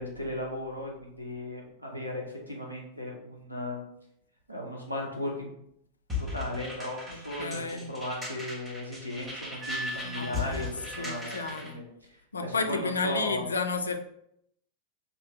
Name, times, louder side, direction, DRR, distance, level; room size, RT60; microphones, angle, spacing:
voice 1, 0.0-3.8 4.5-5.6 6.2-11.8 12.1-13.5, left 1 dB, 90° right, -2 dB, 0.7 m, -36 dB
sound 1, 6.1-11.7, left 3 dB, 10° right, 1.2 m, -38 dB
voice 2, 7.1-7.9 10.0-11.8 12.3-14.0, left 4 dB, 75° left, 7 dB, 0.3 m, -32 dB
Wind instrument woodwind instrument, 9.6-11.6, right 1 dB, 30° right, 0.3 m, -40 dB
2.7 x 2.6 x 3.1 m, 0.73 s
figure-of-eight pair, 90°, 0 cm